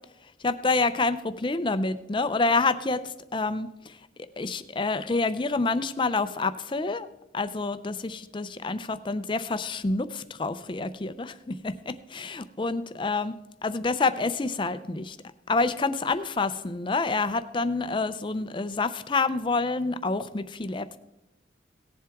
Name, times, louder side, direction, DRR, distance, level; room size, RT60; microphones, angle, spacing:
voice 1, 0.4-4.0 4.4-7.1 7.3-15.2 15.5-21.0, left 3 dB, 25° left, 12 dB, 0.5 m, -28 dB
18.0 x 7.5 x 3.5 m, 0.95 s
head